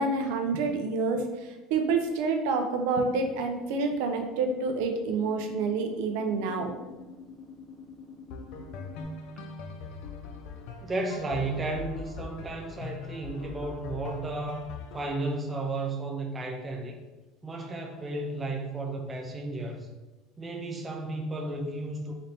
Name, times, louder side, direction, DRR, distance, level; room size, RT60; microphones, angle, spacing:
voice 1, 0.0-6.8, right 4 dB, 65° right, 4 dB, 0.5 m, -28 dB
sound 1, 4.0-9.0, left 4 dB, 10° left, 0.9 m, -47 dB
sound 2, 8.3-15.1, left 4 dB, 55° left, 0.4 m, -41 dB
voice 2, 10.8-14.6 14.9-17.0 17.4-19.9 20.4-22.1, right 2 dB, 15° right, 1 dB, 0.3 m, -33 dB
4.0 x 2.7 x 3.4 m, 1.1 s
cardioid pair, 170°, 0 cm